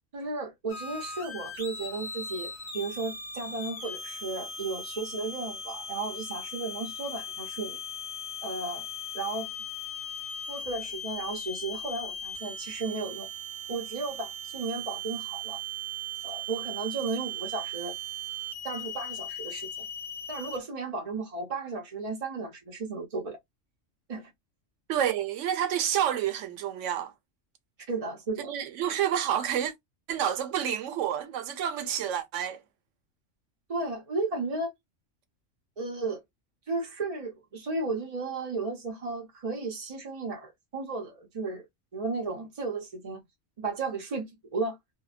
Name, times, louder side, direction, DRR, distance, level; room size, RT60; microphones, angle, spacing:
voice 1, 0.1-7.8 8.4-8.9 9.1-9.5 10.5-13.3 13.7-15.6 16.2-17.9 18.6-19.7 20.3-23.4 24.1-24.3 27.9-28.5 33.7-34.7 35.8-36.2 36.7-41.7 41.9-43.2 43.6-44.8, right 3 dB, 45° right, 0.4 m, -34 dB
sound 1, 0.7-20.6, equal, 40° left, 1.2 m, -38 dB
voice 2, 24.9-27.1 28.4-29.7 30.1-32.6, right 10 dB, 75° right, 0.9 m, -29 dB
2.7 x 2.1 x 2.4 m
omnidirectional pair, 1.3 m